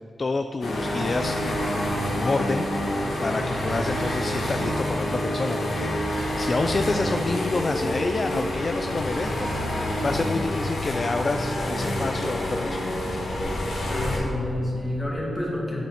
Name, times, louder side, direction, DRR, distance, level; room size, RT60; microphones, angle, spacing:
voice 1, 0.2-9.5 10.0-13.2, left 3 dB, 40° left, 7 dB, 0.3 m, -29 dB
sound 1, 0.6-14.2, left 1 dB, 85° left, 1.8 m, -27 dB
voice 2, 13.9-15.8, left 1 dB, 20° left, -4 dB, 2.3 m, -29 dB
9.0 x 8.0 x 4.3 m, 2.6 s
wide cardioid pair, 95°, 0 cm